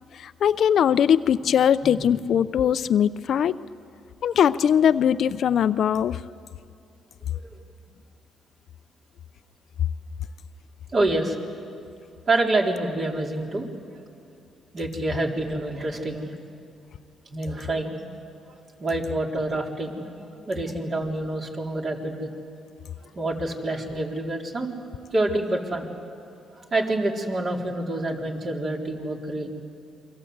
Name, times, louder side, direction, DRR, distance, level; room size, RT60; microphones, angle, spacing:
voice 1, 0.1-3.5 4.2-6.2, left 8 dB, 65° left, 13 dB, 0.6 m, -21 dB
voice 2, 10.9-11.4 12.3-14.0 14.7-16.3 17.3-18.0 18.5-22.3 23.1-24.7 25.1-25.9 26.6-29.5, right 2 dB, 40° right, 0 dB, 4.0 m, -27 dB
29.0 x 23.5 x 8.1 m, 2.6 s
cardioid pair, 90°, 0 cm